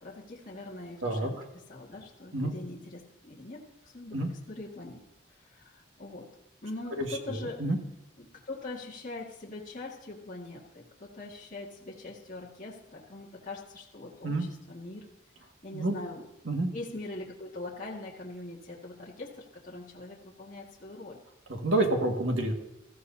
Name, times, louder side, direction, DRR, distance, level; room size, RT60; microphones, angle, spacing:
voice 1, 0.0-5.0 5.3-6.3 6.6-7.6 8.2-15.1 15.6-16.2 16.7-21.2, left 2 dB, 40° left, -4 dB, 2.0 m, -42 dB
voice 2, 7.0-7.8 14.2-14.5 15.7-15.9 16.5-16.7 21.5-22.5, right 1 dB, 85° right, 1 dB, 2.0 m, -28 dB
19.5 x 14.5 x 2.8 m, 0.89 s
head